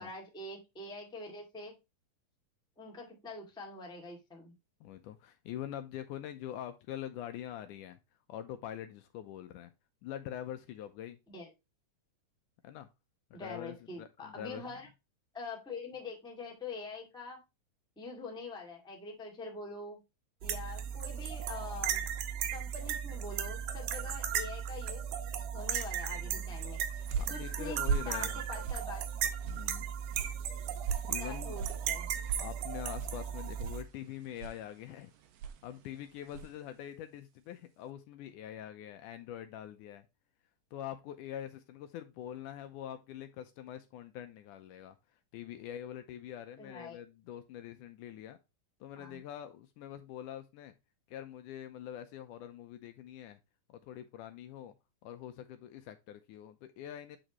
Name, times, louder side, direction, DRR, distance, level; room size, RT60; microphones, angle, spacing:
voice 1, 0.0-1.7 2.8-4.5 11.3-11.5 13.3-14.9 15.3-17.4 17.9-20.0 20.4-22.0 22.5-25.1 25.5-26.8 27.3-27.8 28.0-29.0 31.2-32.1 46.6-47.0 48.9-49.2, left 3 dB, ahead, 1.2 m, -44 dB
voice 2, 4.8-8.0 8.3-9.7 10.0-11.2 12.6-12.9 13.3-14.8 26.1-26.6 27.1-28.4 29.4-29.9 31.0-31.6 32.4-35.1 35.6-40.1 40.7-45.0 45.3-48.4 48.8-50.8 51.1-53.4 53.7-54.8 55.0-57.2, left 11 dB, 80° left, 2.0 m, -44 dB
sound 1, 20.4-33.8, right 9 dB, 70° right, 2.4 m, -36 dB
sound 2, 26.6-36.7, right 6 dB, 90° right, 2.6 m, -41 dB
8.6 x 5.1 x 3.0 m
omnidirectional pair, 3.9 m